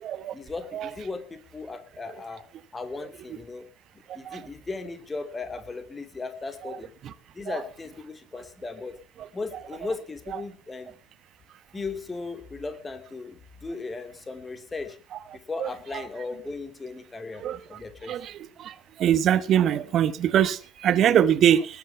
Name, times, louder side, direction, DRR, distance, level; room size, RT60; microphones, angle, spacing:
voice 1, 0.3-2.5 2.7-3.6 4.1-6.9 7.3-8.9 9.3-11.0 11.7-15.0 15.3-18.2, left 3 dB, 20° left, 3.1 m, -37 dB
voice 2, 15.6-16.0 17.4-17.6 18.1-18.3 19.0-21.7, right 10 dB, 45° right, 1.1 m, -22 dB
20.0 x 9.4 x 5.8 m
figure-of-eight pair, 65°, 0 cm